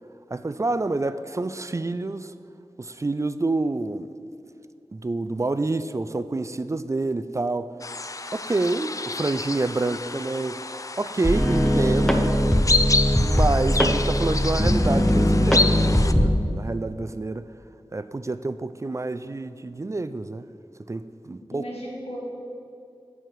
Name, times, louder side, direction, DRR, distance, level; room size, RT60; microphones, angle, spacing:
voice 1, 0.3-2.3 2.8-4.1 4.9-7.7 8.3-10.6 11.0-12.4 13.2-17.4 17.9-20.4 20.9-21.6, right 2 dB, 30° right, 12 dB, 0.3 m, -27 dB
sound 1, 7.8-16.1, left 3 dB, 35° left, 0.4 m, -29 dB
sound 2, 11.2-16.4, equal, 5° left, 0.9 m, -20 dB
voice 2, 21.5-22.2, equal, 90° left, -3 dB, 2.2 m, -37 dB
10.0 x 4.7 x 7.7 m, 2.4 s
wide cardioid pair, 65°, 10 cm